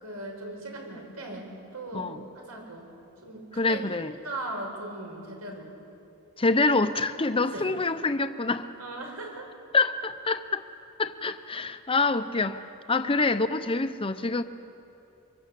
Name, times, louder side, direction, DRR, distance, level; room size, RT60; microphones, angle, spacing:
voice 1, 0.0-2.9 3.2-3.8 4.2-5.7 7.2-7.7 8.8-9.5 12.9-13.1, right 2 dB, 90° right, 6.2 m, -39 dB
voice 2, 3.6-4.1 6.4-8.7 9.7-10.6 11.0-12.6 12.9-14.4, left 3 dB, 25° left, 0.8 m, -26 dB
24.5 x 23.5 x 8.4 m
head